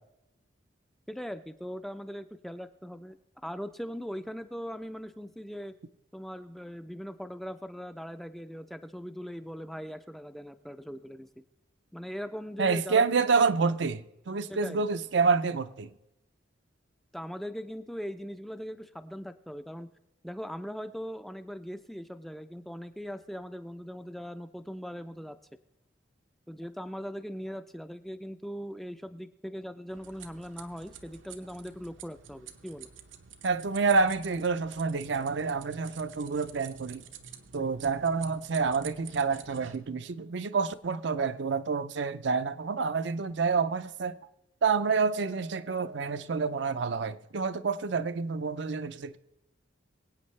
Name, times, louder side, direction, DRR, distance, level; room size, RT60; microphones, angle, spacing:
voice 1, 1.1-3.2 3.4-5.7 6.1-11.4 11.9-13.0 14.5-14.8 17.1-19.9 20.2-25.4 26.5-32.9, equal, ahead, 0.4 m, -40 dB
voice 2, 12.6-15.9 33.4-37.0 37.5-44.2 44.6-49.2, right 4 dB, 70° right, 0.5 m, -28 dB
sound 1, 29.9-39.8, right 7 dB, 85° right, 0.9 m, -49 dB
23.5 x 8.5 x 3.2 m
head